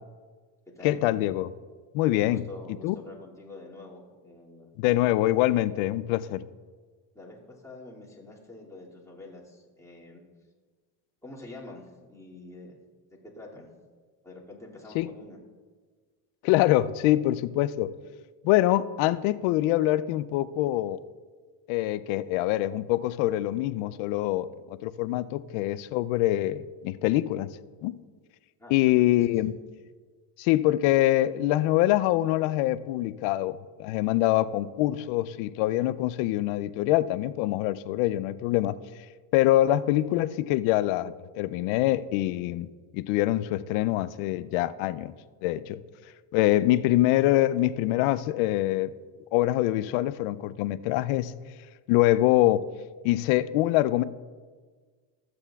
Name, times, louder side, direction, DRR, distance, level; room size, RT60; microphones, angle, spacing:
voice 1, 0.8-1.5 1.9-2.4 2.8-3.0 4.8-6.4 14.9-15.1 16.4-17.9 18.4-21.0 21.7-27.5 27.8-28.0 28.7-29.5 30.4-38.8 39.3-42.7 42.9-45.1 45.4-45.8 46.3-48.9 49.3-51.3 51.9-52.7 53.0-54.0, left 15 dB, 75° left, 15 dB, 0.6 m, -24 dB
voice 2, 2.1-4.7 5.3-5.4 7.1-10.2 11.2-12.8 13.3-13.7 14.2-15.4 28.6-28.8 29.4-29.5, left 2 dB, 5° left, -5 dB, 2.4 m, -46 dB
14.0 x 7.9 x 2.3 m, 1.5 s
supercardioid pair, 90°, 50 cm